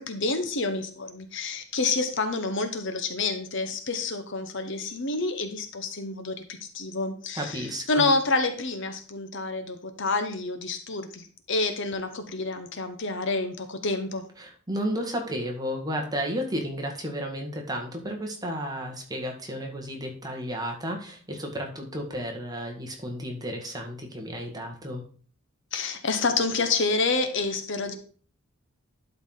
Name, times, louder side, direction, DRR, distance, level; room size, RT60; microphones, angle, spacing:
voice 1, 0.0-14.2 25.7-28.0, left 3 dB, 60° left, 8 dB, 1.1 m, -28 dB
voice 2, 7.4-8.0 14.4-25.0, equal, 20° right, 1 dB, 2.0 m, -33 dB
11.5 x 4.9 x 3.9 m, 0.42 s
head